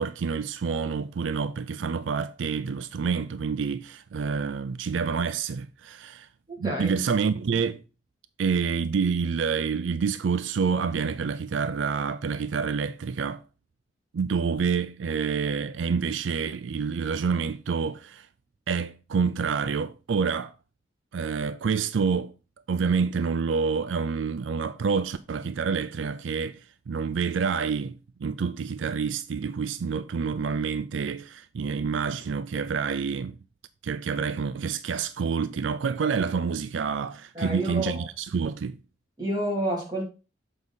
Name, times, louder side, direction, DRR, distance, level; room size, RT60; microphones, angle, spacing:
voice 1, 0.0-6.3 6.6-7.8 8.4-13.4 14.1-18.3 18.7-20.5 21.1-22.3 22.7-26.6 26.9-33.4 33.8-38.8, right 5 dB, 85° right, 0.4 m, -28 dB
voice 2, 6.5-7.0 37.3-38.1 39.2-40.0, right 1 dB, 20° right, 2.6 m, -29 dB
7.1 x 4.8 x 4.1 m
head